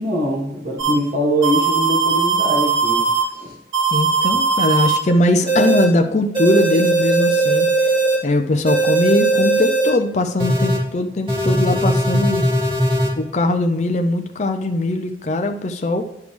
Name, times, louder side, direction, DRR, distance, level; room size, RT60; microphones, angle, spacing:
voice 1, 0.0-3.0 3.3-3.5, equal, 55° right, -2 dB, 1.5 m, -22 dB
sound 1, 0.8-0.9 1.4-3.2 3.7-5.0 5.5-5.8 6.3-8.2 8.7-9.9 10.4-10.8 11.3-13.1, right 3 dB, 30° right, 2.6 m, -18 dB
voice 2, 3.9-7.9 8.2-12.4 13.2-16.2, left 2 dB, 40° left, 5 dB, 0.5 m, -20 dB
10.5 x 5.2 x 3.3 m, 0.86 s
head